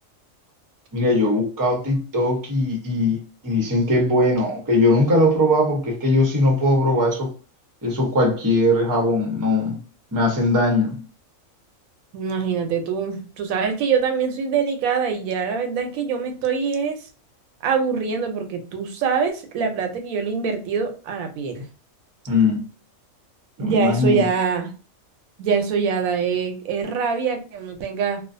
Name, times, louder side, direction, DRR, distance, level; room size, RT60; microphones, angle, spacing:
voice 1, 0.9-3.2 3.4-7.3 7.8-9.8 10.1-11.0 22.3-22.7 23.6-24.2, left 1 dB, 20° right, 0.6 m, -20 dB
voice 2, 12.1-17.1 17.6-21.7 23.6-24.7 25.4-28.2, right 6 dB, 85° right, 1.0 m, -24 dB
2.4 x 2.3 x 2.5 m
omnidirectional pair, 1.4 m